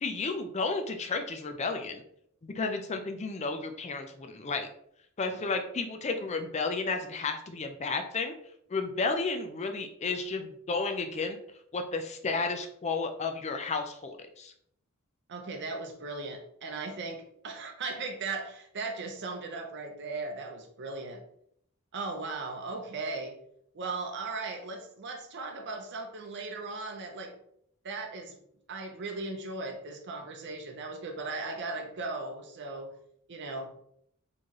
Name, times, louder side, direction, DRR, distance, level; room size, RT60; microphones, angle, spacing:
voice 1, 0.0-2.0 2.4-4.7 5.2-8.3 8.7-11.4 11.7-14.5, left 4 dB, 30° left, 6 dB, 0.5 m, -32 dB
voice 2, 15.3-21.2 21.9-23.4 23.7-27.3 27.8-28.4 28.7-32.9 33.3-33.7, right 3 dB, 55° right, 3 dB, 0.7 m, -37 dB
4.5 x 3.1 x 2.9 m, 0.69 s
head